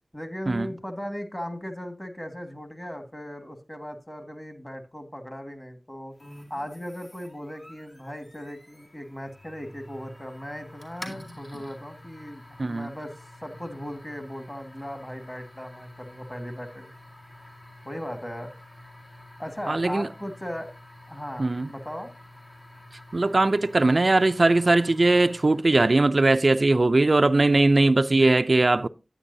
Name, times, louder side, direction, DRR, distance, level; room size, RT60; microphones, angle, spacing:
voice 1, 0.1-6.1 6.5-13.1 13.4-16.9 17.8-18.5 19.4-20.7 21.1-22.1 28.0-28.4, equal, 25° left, 1.6 m, -37 dB
sound 1, 6.2-25.8, left 1 dB, 60° left, 2.2 m, -48 dB
voice 2, 12.6-12.9 19.7-20.1 21.4-21.7 23.1-28.9, right 2 dB, 65° right, 0.4 m, -20 dB
10.0 x 9.0 x 2.7 m
wide cardioid pair, 50°, 0 cm